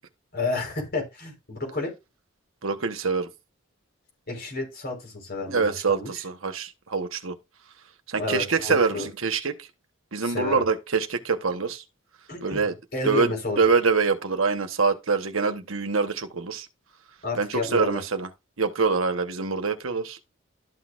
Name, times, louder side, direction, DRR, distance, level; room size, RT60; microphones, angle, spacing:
voice 1, 0.3-1.9 4.3-6.1 8.2-9.1 10.2-10.6 12.3-12.7 12.9-13.6 17.2-18.0, left 2 dB, 50° left, 4.5 m, -31 dB
voice 2, 2.6-3.3 5.5-7.3 8.1-9.7 10.1-11.8 12.4-12.7 13.0-13.3 13.6-16.7 17.3-18.3 18.6-20.2, right 4 dB, 80° right, 1.2 m, -25 dB
12.5 x 6.2 x 2.5 m
head